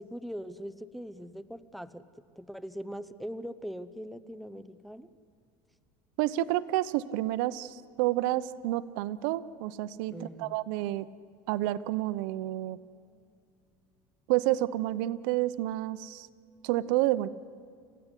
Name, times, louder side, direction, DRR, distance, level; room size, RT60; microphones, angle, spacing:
voice 1, 0.0-2.0 2.4-5.1 10.1-10.6, equal, ahead, 12 dB, 0.7 m, -41 dB
voice 2, 6.2-11.1 11.5-12.8 14.3-16.3 16.6-17.3, right 15 dB, 80° right, 16 dB, 0.8 m, -29 dB
28.0 x 15.5 x 9.9 m, 2.3 s
cardioid pair, 135°, 10 cm